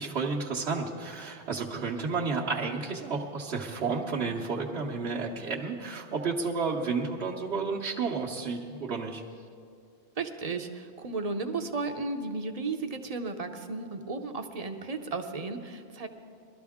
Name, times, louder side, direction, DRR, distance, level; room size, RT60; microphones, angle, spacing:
voice 1, 0.0-9.2, right 4 dB, 70° right, -6 dB, 1.2 m, -31 dB
voice 2, 10.2-16.1, right 3 dB, 40° right, 6 dB, 0.8 m, -34 dB
20.5 x 12.5 x 3.6 m, 2.3 s
omnidirectional pair, 1.1 m